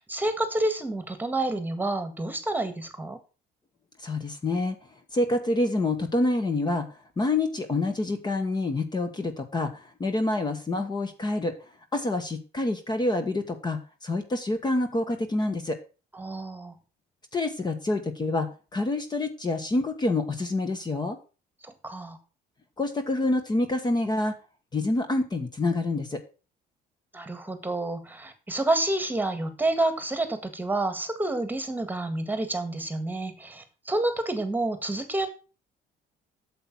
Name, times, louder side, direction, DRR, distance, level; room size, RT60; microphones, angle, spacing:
voice 1, 0.0-3.2 16.1-16.7 21.6-22.2 27.1-35.3, right 2 dB, 10° right, 9 dB, 1.8 m, -29 dB
voice 2, 4.0-4.8 5.1-6.9 7.2-11.5 11.9-15.8 17.3-21.2 22.8-24.3 24.7-26.2, left 2 dB, 25° left, 7 dB, 1.4 m, -27 dB
8.6 x 7.3 x 6.0 m, 0.34 s
cardioid pair, 110°, 17 cm